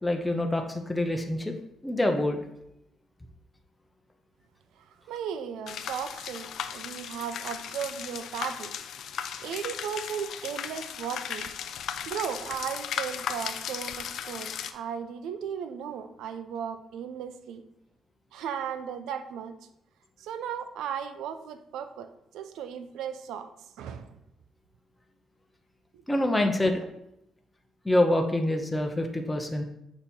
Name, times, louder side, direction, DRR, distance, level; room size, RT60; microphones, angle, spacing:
voice 1, 0.0-1.5 1.8-2.4 26.1-26.8 27.8-29.6, left 1 dB, 10° left, 4 dB, 0.7 m, -26 dB
voice 2, 4.8-8.7 9.4-11.6 12.1-17.6 18.3-19.6 20.2-23.5 23.8-24.1, right 8 dB, 85° right, 10 dB, 0.5 m, -36 dB
sound 1, 5.7-14.7, left 8 dB, 70° left, 0.4 m, -36 dB
6.7 x 3.0 x 5.3 m, 0.81 s
cardioid pair, 90°, 0 cm